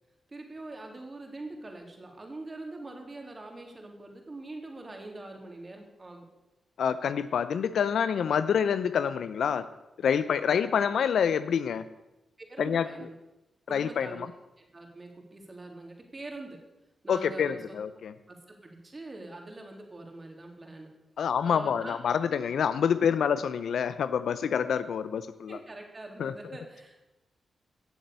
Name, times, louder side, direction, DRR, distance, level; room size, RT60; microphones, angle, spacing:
voice 1, 0.3-6.3 12.4-13.1 13.7-14.3 14.6-16.6 17.0-17.8 18.3-20.9 21.4-22.0 25.5-27.1, right 2 dB, 40° right, 2 dB, 3.4 m, -43 dB
voice 2, 6.8-9.7 10.0-11.8 12.6-12.9 13.7-14.3 17.1-18.1 21.2-25.6 26.2-26.3, left 7 dB, 75° left, 13 dB, 0.6 m, -27 dB
15.5 x 7.4 x 6.9 m, 0.98 s
supercardioid pair, 45°, 0 cm